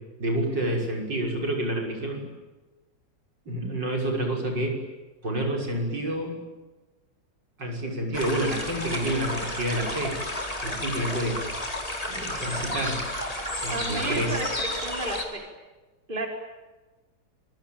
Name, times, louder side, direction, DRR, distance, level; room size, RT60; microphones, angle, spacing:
voice 1, 0.2-2.3 3.5-4.8 5.2-6.4 7.6-10.2 10.6-11.4 12.1-13.0 13.6-14.3, right 1 dB, 75° right, 1 dB, 6.8 m, -28 dB
sound 1, 8.1-15.2, left 1 dB, 20° left, 4.4 m, -32 dB
voice 2, 13.7-15.5 16.1-16.3, right 2 dB, 25° right, 3 dB, 4.5 m, -32 dB
27.0 x 23.5 x 9.0 m, 1.2 s
omnidirectional pair, 1.9 m